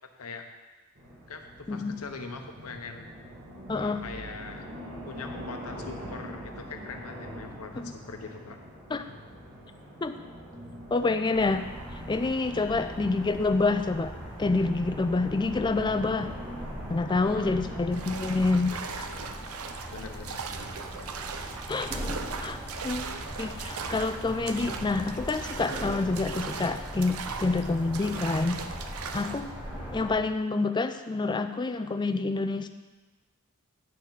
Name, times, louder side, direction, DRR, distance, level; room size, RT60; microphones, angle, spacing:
sound 1, 1.0-18.5, equal, 65° right, 2.2 m, -43 dB
voice 1, 1.3-3.1 3.7-4.6 5.0-8.6 12.5-13.0 17.1-17.8 18.7-19.4 19.9-20.6 27.2-27.4, left 4 dB, 85° left, 5 dB, 0.9 m, -42 dB
voice 2, 3.7-4.0 7.8-7.9 8.9-9.0 10.0-10.2 10.9-11.6 11.9-14.1 14.4-16.3 16.9-18.7 21.7-21.9 22.4-22.6 22.8-23.1 23.4-28.6 29.1-29.6 29.9-32.7, left 3 dB, 20° left, 9 dB, 0.4 m, -27 dB
sound 2, 11.3-30.1, equal, 10° right, 2.8 m, -40 dB
sound 3, 17.9-29.5, right 5 dB, 80° right, 0.6 m, -39 dB
9.8 x 6.7 x 3.9 m, 1.2 s
head